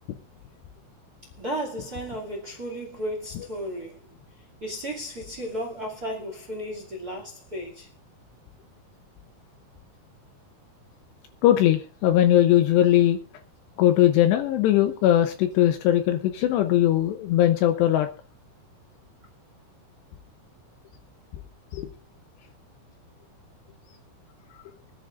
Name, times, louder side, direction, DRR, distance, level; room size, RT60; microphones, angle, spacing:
voice 1, 1.4-4.0 4.4-7.9, equal, 30° right, 1.7 m, -34 dB
voice 2, 11.4-13.2 13.8-18.1 21.7-21.9, left 12 dB, 80° left, 2.6 m, -20 dB
24.5 x 10.0 x 2.5 m
omnidirectional pair, 5.6 m